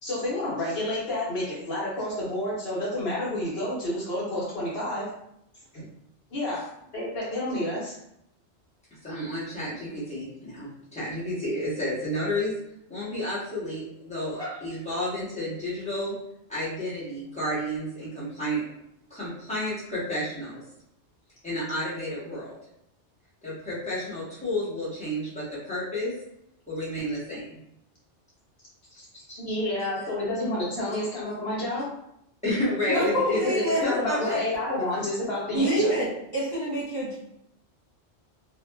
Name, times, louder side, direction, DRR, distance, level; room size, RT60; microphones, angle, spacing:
voice 1, 0.0-5.1 5.7-5.9 6.3-6.6 6.9-7.9 29.0-29.1 29.4-31.8 33.0-35.9, left 1 dB, 60° left, -6 dB, 1.1 m, -29 dB
voice 2, 9.0-12.5 12.9-16.1 16.5-18.6 19.1-20.6 21.4-22.6 23.4-26.1 26.7-27.6 29.3-29.5 32.4-33.4 33.8-34.4, left 1 dB, 5° left, -10 dB, 1.1 m, -31 dB
voice 3, 32.9-33.8 34.2-34.3 34.7-34.8 35.5-37.2, right 1 dB, 25° right, -9 dB, 0.6 m, -27 dB
2.8 x 2.2 x 2.2 m, 0.77 s
omnidirectional pair, 1.2 m